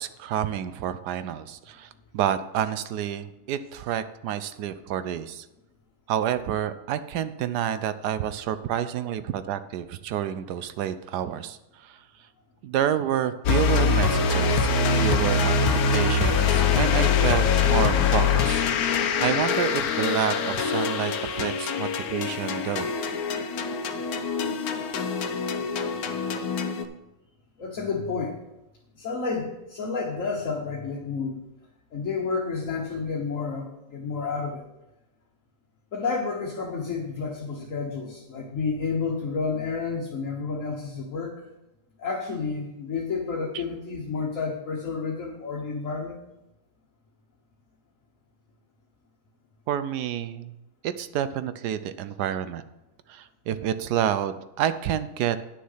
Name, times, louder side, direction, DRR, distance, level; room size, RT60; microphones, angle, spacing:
voice 1, 0.0-5.5 6.1-12.0 12.6-18.6 19.2-22.9 43.5-43.6 49.7-50.5 50.8-52.6 53.1-55.4, right 10 dB, 75° right, 12 dB, 1.1 m, -29 dB
sound 1, 13.5-26.9, left 5 dB, 65° left, 1.2 m, -24 dB
voice 2, 27.6-28.4 29.0-31.3 31.9-34.6 35.9-41.4 42.0-46.2, left 4 dB, 50° left, -1 dB, 1.5 m, -30 dB
9.6 x 6.6 x 5.6 m, 0.94 s
omnidirectional pair, 1.9 m